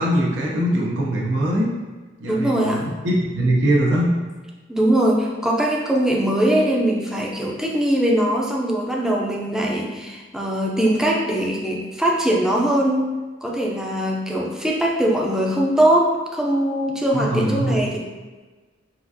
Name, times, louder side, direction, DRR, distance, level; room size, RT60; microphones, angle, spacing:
voice 1, 0.0-1.7 2.2-4.0 17.1-17.7, right 1 dB, 85° right, -4 dB, 0.8 m, -21 dB
voice 2, 2.3-2.8 4.7-13.1 13.4-18.0, right 1 dB, 5° right, -2 dB, 0.5 m, -21 dB
5.6 x 2.5 x 2.7 m, 1.3 s
head